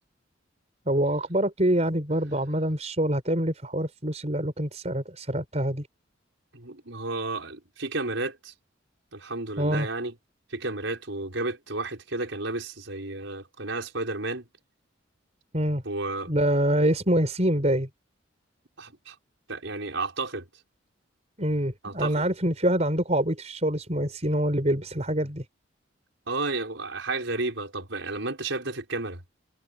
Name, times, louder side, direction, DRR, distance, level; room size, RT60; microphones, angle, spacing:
voice 1, 0.9-5.9 9.6-9.9 15.5-15.8 16.3-17.9 21.4-25.4, right 1 dB, 35° right, 5.4 m, -25 dB
voice 2, 6.5-8.5 9.1-10.1 10.5-14.4 15.8-16.3 18.8-19.1 19.5-20.5 21.8-22.2 26.3-29.2, right 2 dB, 80° right, 5.0 m, -32 dB
head